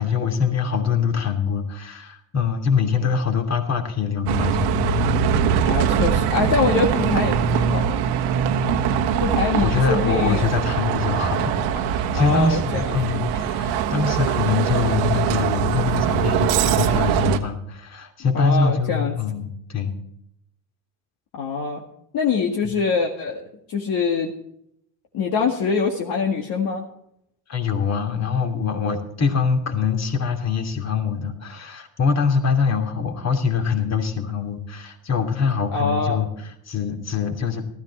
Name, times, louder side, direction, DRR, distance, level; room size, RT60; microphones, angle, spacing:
voice 1, 0.0-5.0 9.6-19.9 22.6-22.7 27.5-37.6, left 5 dB, 40° left, 4 dB, 2.9 m, -24 dB
Bus, 4.3-17.4, right 8 dB, 70° right, 1.4 m, -22 dB
voice 2, 5.6-8.0 9.2-10.4 12.1-13.0 18.3-19.1 21.3-21.8 22.1-24.3 25.1-26.8 35.7-36.2, left 5 dB, 55° left, 1 dB, 2.0 m, -24 dB
14.0 x 13.0 x 4.2 m, 0.76 s
supercardioid pair, 85°, 42 cm